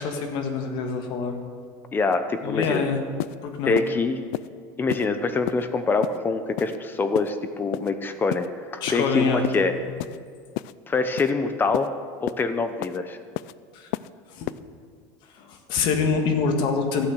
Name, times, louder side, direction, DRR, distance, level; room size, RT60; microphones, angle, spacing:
voice 1, 0.0-1.4 2.4-3.0 3.4-3.7 8.8-9.4 13.7-13.9 14.3-14.5 15.3-17.1, left 5 dB, 60° left, 5 dB, 1.8 m, -25 dB
voice 2, 1.9-2.8 3.7-4.2 4.8-9.7 10.9-11.9 12.2-13.2, left 4 dB, 20° left, 9 dB, 0.9 m, -25 dB
sound 1, 2.1-2.2 2.6-2.8 3.2-3.4 3.8-3.9 4.3-4.5 4.9-5.1 5.5-5.6 6.0-6.2 6.6-6.8 7.2-7.3 7.7-7.9 8.3-8.5 8.9-9.1 9.4-9.6 10.0-10.2 10.6-10.7 11.2-11.3 11.7-11.9 12.3-12.4 12.8-13.0 13.4-13.5 13.9-14.1 14.5-14.6, left 18 dB, 75° left, 0.4 m, -31 dB
13.0 x 8.7 x 6.5 m, 2.1 s
supercardioid pair, 135°, 9 cm